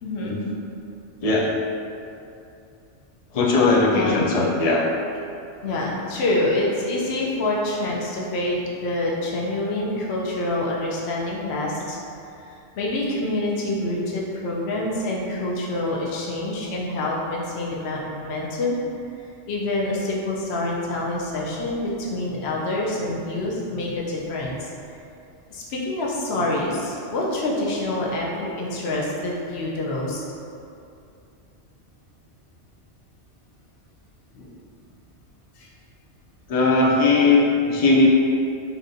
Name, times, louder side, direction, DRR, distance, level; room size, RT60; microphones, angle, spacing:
voice 1, 0.0-0.4 3.9-4.1 5.6-12.0 12.4-18.8 19.2-24.7 25.5-30.2 34.3-34.5 35.6-35.7, left 2 dB, 70° left, -3 dB, 0.9 m, -26 dB
voice 2, 3.3-4.9 36.5-38.1, left 3 dB, 50° left, -2 dB, 0.5 m, -18 dB
5.6 x 2.5 x 2.6 m, 2.6 s
omnidirectional pair, 1.2 m